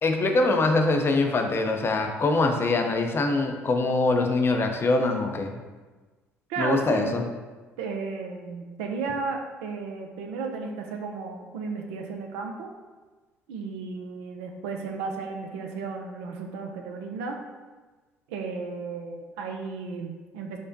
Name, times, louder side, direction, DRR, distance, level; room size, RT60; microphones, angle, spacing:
voice 1, 0.0-5.5 6.6-7.2, left 3 dB, 35° left, 4 dB, 0.5 m, -23 dB
voice 2, 6.5-7.2 7.8-12.7 13.5-17.4 18.3-20.6, right 4 dB, 75° right, 3 dB, 0.4 m, -34 dB
5.0 x 2.1 x 2.6 m, 1.3 s
hypercardioid pair, 55°, 7 cm